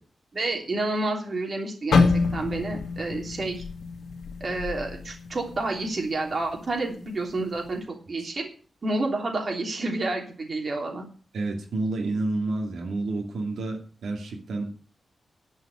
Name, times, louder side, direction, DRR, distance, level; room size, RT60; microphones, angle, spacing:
voice 1, 0.3-2.0 2.3-3.6 4.4-8.5 8.8-11.0, right 2 dB, 40° right, 1 dB, 3.1 m, -29 dB
sound 1, 1.9-5.9 6.3-6.6 7.2-7.5, left 4 dB, 75° left, 1.4 m, -26 dB
voice 2, 11.3-14.7, right 2 dB, 85° right, 1 dB, 2.7 m, -29 dB
11.5 x 5.8 x 8.6 m, 0.39 s
wide cardioid pair, 155°, 0 cm